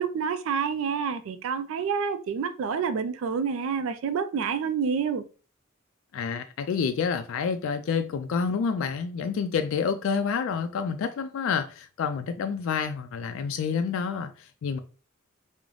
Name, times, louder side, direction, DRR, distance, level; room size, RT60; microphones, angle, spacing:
voice 1, 0.0-5.3, right 6 dB, 70° right, 0.3 m, -28 dB
voice 2, 6.1-14.8, left 6 dB, 70° left, 0.3 m, -28 dB
3.8 x 2.0 x 3.1 m
head